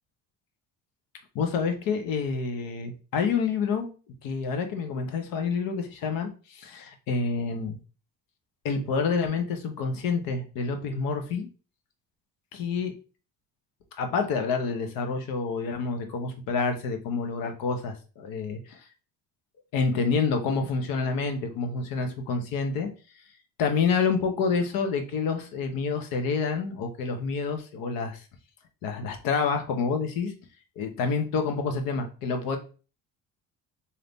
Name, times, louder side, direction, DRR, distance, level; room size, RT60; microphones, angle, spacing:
voice 1, 1.3-3.9 4.2-7.8 8.6-11.5 12.5-12.9 14.0-18.8 19.7-22.9 23.6-28.2 28.8-30.3 30.8-32.6, left 5 dB, 75° left, 6 dB, 0.9 m, -28 dB
3.5 x 2.8 x 3.9 m, 0.36 s
cardioid pair, 170°, 34 cm